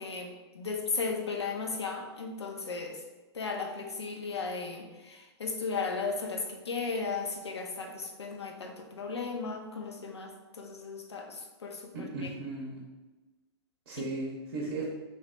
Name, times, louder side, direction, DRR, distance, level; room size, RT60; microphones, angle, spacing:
voice 1, 0.0-3.0 3.3-12.3 14.0-14.1, left 4 dB, 75° left, 3 dB, 0.5 m, -36 dB
voice 2, 11.9-12.8 13.9-14.8, right 2 dB, 55° right, -3 dB, 0.7 m, -36 dB
3.0 x 2.8 x 3.1 m, 1.2 s
figure-of-eight pair, 100°, 14 cm